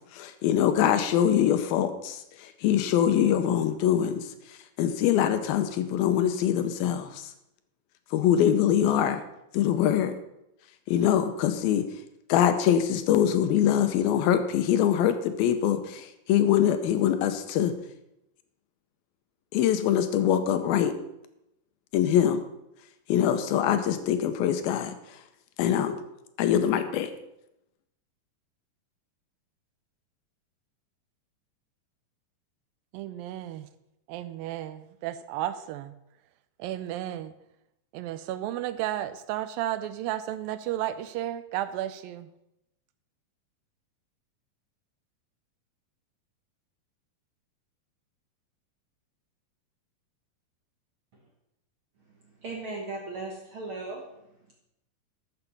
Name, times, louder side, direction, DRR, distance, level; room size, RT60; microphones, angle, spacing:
voice 1, 0.1-4.3 4.8-7.3 8.1-9.2 9.5-10.2 10.9-11.9 12.3-17.7 19.5-21.0 21.9-22.4 23.1-25.0 25.6-26.0 26.4-27.1, left 10 dB, 85° left, 9 dB, 2.7 m, -23 dB
voice 2, 32.9-33.7 34.1-35.9 36.6-37.3 37.9-42.3, right 13 dB, 80° right, 12 dB, 2.2 m, -33 dB
voice 3, 52.4-54.0, right 3 dB, 60° right, -1 dB, 1.4 m, -36 dB
13.0 x 7.1 x 5.4 m, 0.84 s
omnidirectional pair, 4.2 m